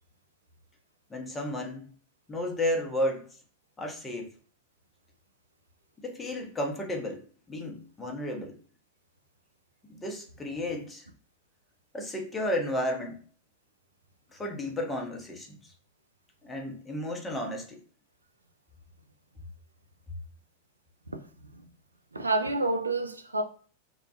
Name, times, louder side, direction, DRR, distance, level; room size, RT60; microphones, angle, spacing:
voice 1, 1.1-1.9 2.3-3.3 3.8-4.3 6.0-8.6 9.9-11.1 11.9-13.2 14.3-15.6 16.4-17.8, left 1 dB, 15° left, 0.6 m, -33 dB
voice 2, 22.1-23.4, right 2 dB, 80° right, 0.4 m, -28 dB
2.2 x 2.0 x 2.7 m
figure-of-eight pair, 90°, 0 cm